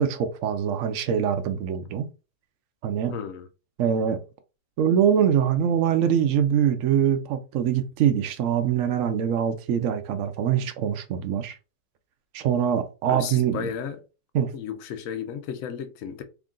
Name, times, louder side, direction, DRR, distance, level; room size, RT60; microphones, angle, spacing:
voice 1, 0.0-2.1 2.8-3.1 3.8-4.2 4.8-11.6 12.3-13.7 14.3-14.5, right 8 dB, 80° right, 0.7 m, -23 dB
voice 2, 3.1-3.5 13.1-14.0 14.5-16.2, left 8 dB, 70° left, 0.8 m, -34 dB
3.6 x 2.4 x 3.7 m
omnidirectional pair, 2.0 m